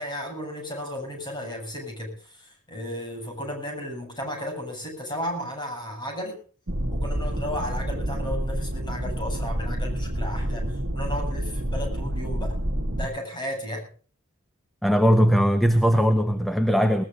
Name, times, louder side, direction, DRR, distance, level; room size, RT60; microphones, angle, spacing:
voice 1, 0.0-6.4 6.9-12.6 12.9-13.9, equal, 20° left, 7.5 m, -34 dB
sound 1, 6.7-13.1, right 1 dB, 60° right, 1.8 m, -28 dB
voice 2, 14.8-17.0, equal, ahead, 1.0 m, -19 dB
20.5 x 20.0 x 2.6 m
head